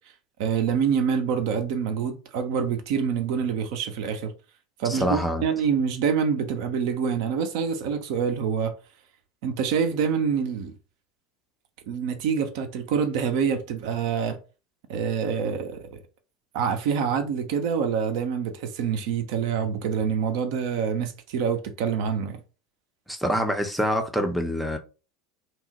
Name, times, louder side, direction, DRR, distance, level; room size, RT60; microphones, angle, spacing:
voice 1, 0.4-4.3 4.8-8.8 9.4-10.7 11.9-14.4 14.9-16.0 16.5-22.4, right 7 dB, 55° right, 0.5 m, -26 dB
voice 2, 4.9-5.4 23.1-24.8, equal, ahead, 0.5 m, -25 dB
3.0 x 2.0 x 2.8 m
figure-of-eight pair, 75°, 2 cm